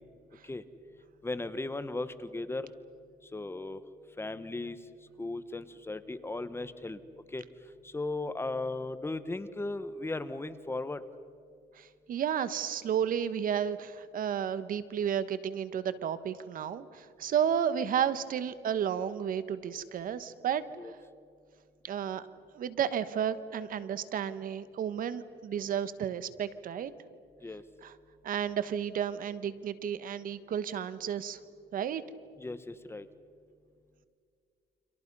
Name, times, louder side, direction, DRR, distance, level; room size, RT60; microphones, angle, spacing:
voice 1, 1.2-2.7 3.2-3.8 4.2-4.8 5.2-7.0 7.3-7.4 7.8-11.0 20.8-20.9 27.4-27.6 32.4-33.1, left 2 dB, 15° left, 12 dB, 1.3 m, -36 dB
voice 2, 11.7-20.9 21.8-22.3 22.5-26.9 27.8-27.9 28.2-31.4 31.7-32.0, right 8 dB, 55° right, 14 dB, 1.2 m, -32 dB
30.0 x 26.5 x 5.5 m, 2.2 s
cardioid pair, 110°, 17 cm